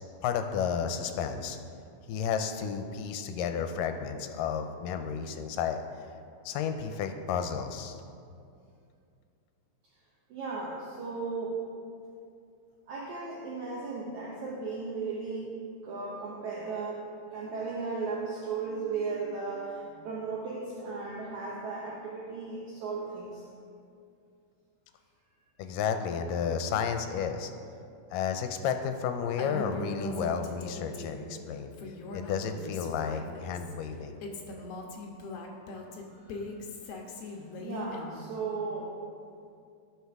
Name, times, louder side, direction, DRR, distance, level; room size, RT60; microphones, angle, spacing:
voice 1, 0.2-1.6 2.1-5.8 6.5-8.0 25.6-27.5 28.1-31.7 32.1-34.2, left 7 dB, 85° left, 7 dB, 2.2 m, -32 dB
voice 2, 10.3-11.6 12.9-15.5 15.8-23.4 36.3-36.4 37.2-38.9, right 4 dB, 65° right, -5 dB, 2.3 m, -36 dB
Female speech woman speaking, 29.4-31.3 31.7-33.7 34.2-38.3, left 2 dB, 65° left, 1.6 m, -40 dB
18.0 x 6.1 x 3.5 m, 2.4 s
omnidirectional pair, 3.9 m